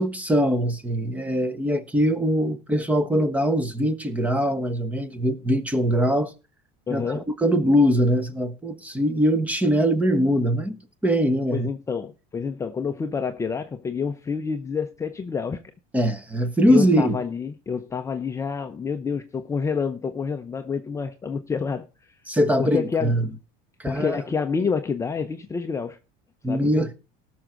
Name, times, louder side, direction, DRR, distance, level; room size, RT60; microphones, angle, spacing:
voice 1, 0.0-6.3 6.9-10.8 11.0-11.7 15.9-17.2 22.3-23.3 23.8-24.2 26.4-26.9, equal, 5° right, 1.0 m, -22 dB
voice 2, 6.9-7.3 11.5-15.6 16.7-22.2 22.6-23.2 23.8-26.0 26.5-26.7, left 5 dB, 15° left, 0.6 m, -28 dB
18.0 x 6.2 x 3.8 m
cardioid pair, 155°, 19 cm